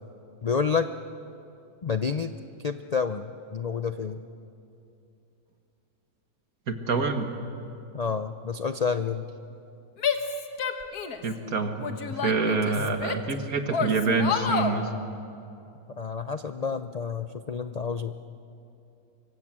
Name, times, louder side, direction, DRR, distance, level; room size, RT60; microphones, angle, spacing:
voice 1, 0.4-0.9 1.8-2.3 2.6-4.2 7.9-9.2 12.8-13.0 16.0-18.1, left 5 dB, 50° left, 9 dB, 0.4 m, -29 dB
voice 2, 6.7-7.3 11.2-11.9 12.2-14.9, right 4 dB, 75° right, 6 dB, 2.1 m, -26 dB
Female speech woman speaking / Yell, 10.0-11.3 11.8-13.3 13.7-14.8, left 6 dB, 85° left, 1.9 m, -29 dB
25.0 x 24.5 x 7.6 m, 2.7 s
omnidirectional pair, 1.6 m